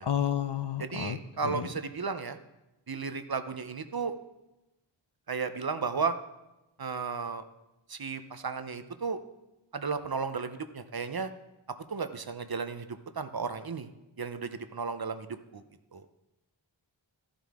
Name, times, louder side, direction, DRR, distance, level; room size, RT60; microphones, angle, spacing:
voice 1, 0.0-1.2 1.4-1.7, left 9 dB, 60° left, 11 dB, 0.6 m, -30 dB
voice 2, 0.8-2.4 2.9-4.1 5.3-6.1 6.8-7.4 7.9-9.2 9.7-11.3 11.9-13.9 14.2-15.6 15.9-16.0, right 5 dB, 50° right, 10 dB, 0.7 m, -34 dB
13.5 x 7.5 x 3.6 m, 0.98 s
wide cardioid pair, 40°, 46 cm